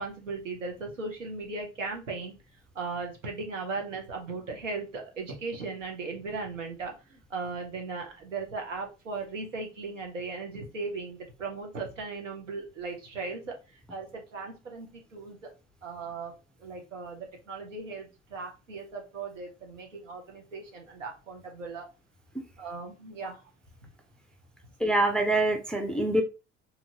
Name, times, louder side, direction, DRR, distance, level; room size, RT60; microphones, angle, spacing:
voice 1, 0.0-2.3 2.7-15.5 15.8-21.9 22.6-23.4, right 4 dB, 80° right, 2 dB, 1.0 m, -37 dB
voice 2, 24.8-26.2, right 1 dB, ahead, 4 dB, 0.4 m, -25 dB
3.0 x 2.5 x 2.8 m, 0.29 s
figure-of-eight pair, 70°, 37 cm